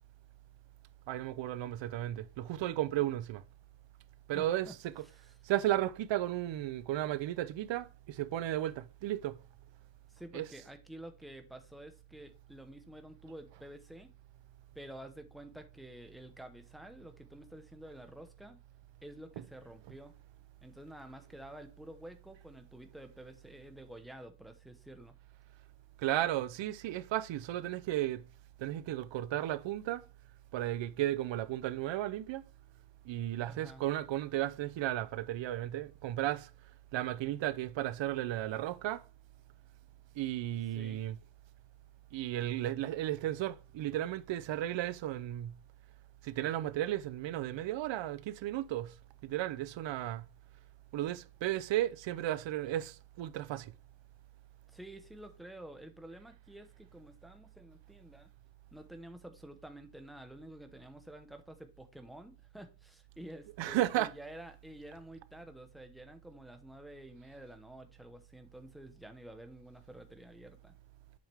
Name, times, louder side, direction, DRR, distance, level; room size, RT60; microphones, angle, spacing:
voice 1, 1.1-3.4 4.3-4.7 5.0-5.1 5.4-9.4 10.3-10.4 26.0-28.2 28.6-30.0 30.5-32.5 33.0-36.5 36.9-39.0 40.2-41.2 42.1-45.5 46.2-48.9 49.2-50.3 50.9-53.7 63.6-64.1, right 13 dB, 85° right, 0.7 m, -34 dB
voice 2, 4.3-4.8 5.0-5.4 10.1-14.1 14.7-18.6 19.0-20.1 20.6-25.2 33.5-33.8 40.7-41.0 54.7-58.3 58.7-70.8, right 1 dB, ahead, 0.9 m, -50 dB
7.6 x 5.7 x 3.4 m
wide cardioid pair, 160°, 43 cm